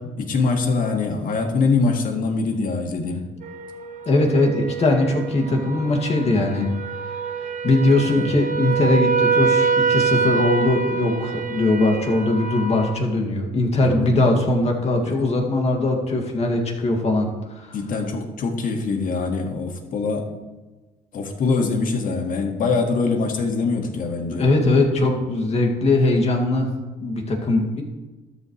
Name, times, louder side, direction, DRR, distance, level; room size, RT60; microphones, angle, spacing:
voice 1, 0.2-3.2 8.2-8.3 13.8-14.1 15.1-15.2 17.7-20.3 21.1-24.5, left 4 dB, 55° left, 3 dB, 1.8 m, -23 dB
sound 1, 3.4-12.9, right 5 dB, 50° right, 1.0 m, -25 dB
voice 2, 4.1-6.7 7.6-17.7 24.4-26.7 27.0-27.8, left 2 dB, 40° left, 2 dB, 2.1 m, -20 dB
13.0 x 10.0 x 3.2 m, 1.2 s
cardioid pair, 110°, 17 cm